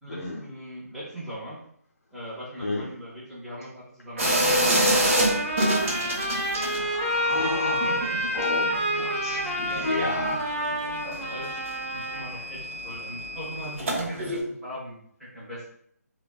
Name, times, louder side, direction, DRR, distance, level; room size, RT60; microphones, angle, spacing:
voice 1, 0.0-1.6 2.1-4.3 7.6-8.2 9.6-10.4 10.7-10.8 11.0-11.6 11.9-15.7, right 1 dB, ahead, -10 dB, 0.8 m, -39 dB
Trumpet, 4.2-12.3, equal, 30° right, 0.5 m, -29 dB
sound 1, 4.2-6.8 7.1-10.3 10.6-14.4, equal, 50° right, 0.9 m, -28 dB
voice 2, 6.5-7.8 8.4-10.7, left 3 dB, 60° left, -1 dB, 0.6 m, -32 dB
3.2 x 2.1 x 2.3 m, 0.67 s
figure-of-eight pair, 150°, 9 cm